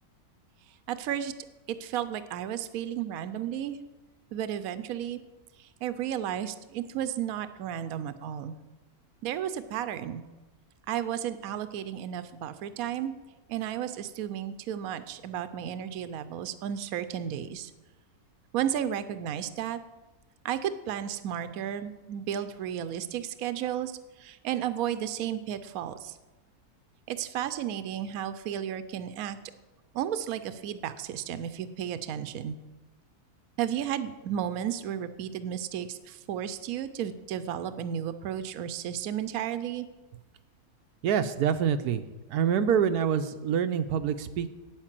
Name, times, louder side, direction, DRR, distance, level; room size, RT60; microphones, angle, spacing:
voice 1, 0.9-1.3 1.7-3.8 4.3-5.2 5.6-8.5 9.2-10.2 10.9-13.1 13.5-17.7 18.5-19.8 20.4-26.2 27.1-29.4 29.9-32.6 33.6-39.9, right 10 dB, 75° right, 12 dB, 1.1 m, -33 dB
voice 2, 41.0-42.0 42.3-44.5, right 8 dB, 90° right, 9 dB, 1.2 m, -26 dB
9.2 x 9.0 x 7.5 m, 1.1 s
omnidirectional pair, 1.6 m